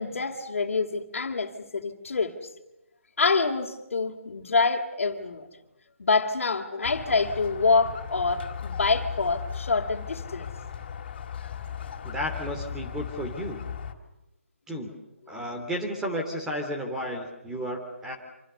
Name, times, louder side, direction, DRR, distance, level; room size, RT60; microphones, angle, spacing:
voice 1, 0.0-2.3 3.2-5.5 6.0-10.5, left 4 dB, 65° left, -2 dB, 3.0 m, -26 dB
Squeak, 6.8-13.9, left 7 dB, 45° left, 3.6 m, -37 dB
voice 2, 12.0-13.6 14.7-14.9 15.3-18.1, equal, 5° right, 1 dB, 3.0 m, -33 dB
27.5 x 27.0 x 7.0 m, 0.95 s
figure-of-eight pair, 155°, 8 cm